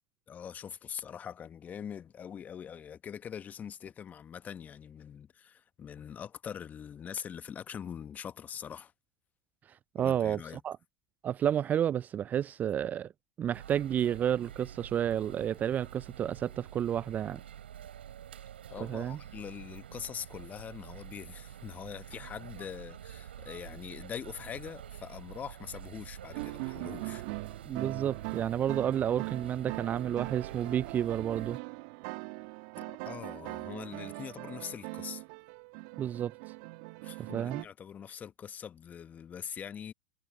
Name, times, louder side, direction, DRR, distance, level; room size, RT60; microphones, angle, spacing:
voice 1, 0.3-8.9 10.0-10.6 18.7-27.2 32.8-35.2 37.0-39.9, left 8 dB, 25° left, 1.4 m, -43 dB
voice 2, 9.7-10.8 11.2-13.1 13.4-17.4 18.8-19.2 27.6-31.6 36.0-36.3 37.3-37.6, right 10 dB, 30° right, 0.5 m, -31 dB
sound 1, 13.5-31.6, right 10 dB, 75° right, 3.6 m, -47 dB
sound 2, 26.3-37.6, right 32 dB, 55° right, 1.5 m, -41 dB
figure-of-eight pair, 90°, 6 cm